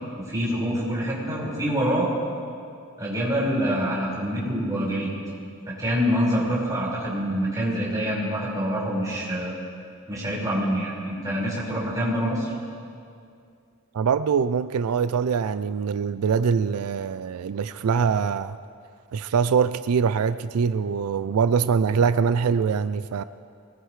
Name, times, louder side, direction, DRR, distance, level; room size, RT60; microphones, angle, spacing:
voice 1, 0.2-2.1 3.0-5.1 5.7-9.6 10.1-12.5, equal, 15° right, -7 dB, 5.0 m, -26 dB
voice 2, 13.9-18.6 19.1-23.2, right 6 dB, 85° right, 13 dB, 0.4 m, -23 dB
23.0 x 19.5 x 3.2 m, 2.4 s
head